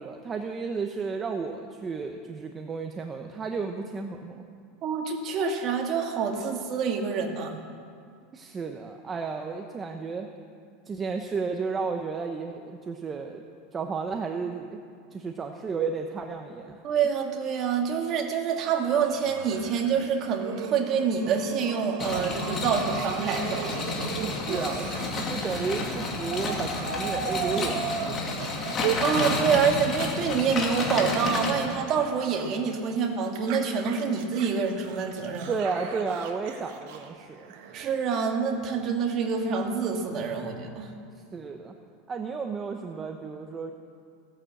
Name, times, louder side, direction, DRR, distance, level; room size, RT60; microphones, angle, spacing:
voice 1, 0.0-4.4 8.3-10.3 10.9-13.4 13.7-14.8 15.1-16.8 24.2-28.4 35.5-37.5 41.3-41.7 42.1-43.7, right 5 dB, 15° right, 4 dB, 0.8 m, -33 dB
voice 2, 4.8-7.6 16.8-23.7 28.8-35.5 37.7-40.9, right 6 dB, 35° right, 2 dB, 1.8 m, -27 dB
sound 1, 18.5-30.0 30.3-33.0 33.4-37.8, right 7 dB, 60° right, 1.7 m, -37 dB
sound 2, 22.0-31.5, left 3 dB, 25° left, 2.3 m, -31 dB
16.5 x 11.0 x 7.8 m, 2.3 s
supercardioid pair, 160°, 0 cm